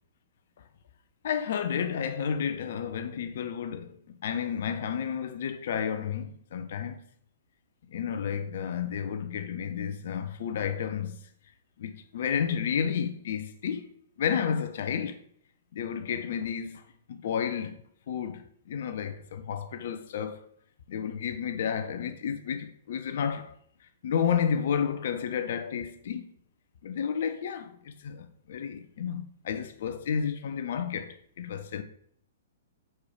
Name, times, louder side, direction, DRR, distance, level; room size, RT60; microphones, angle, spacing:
voice 1, 1.2-4.0 4.2-7.0 7.9-11.3 11.8-13.9 14.2-15.2 15.7-16.8 17.1-17.8 18.1-20.5 20.9-23.5 24.0-26.2 26.8-31.8, left 7 dB, 50° left, 0.6 m, -31 dB
4.8 x 4.4 x 4.7 m
figure-of-eight pair, 110°, 0 cm